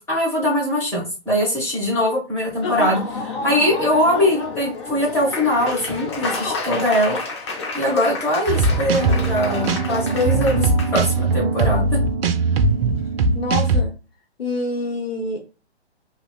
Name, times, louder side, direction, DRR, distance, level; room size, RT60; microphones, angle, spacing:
voice 1, 0.0-7.2 7.7-11.8, left 1 dB, 10° left, -5 dB, 1.3 m, -21 dB
Laughter / Applause, 2.5-10.9, left 3 dB, 25° left, 0.5 m, -29 dB
sound 1, 8.5-13.8, right 3 dB, 60° right, 0.5 m, -20 dB
voice 2, 13.3-13.9 14.4-15.4, left 2 dB, 65° left, 2 dB, 0.8 m, -26 dB
2.8 x 2.8 x 2.3 m, 0.31 s
figure-of-eight pair, 125°, 33 cm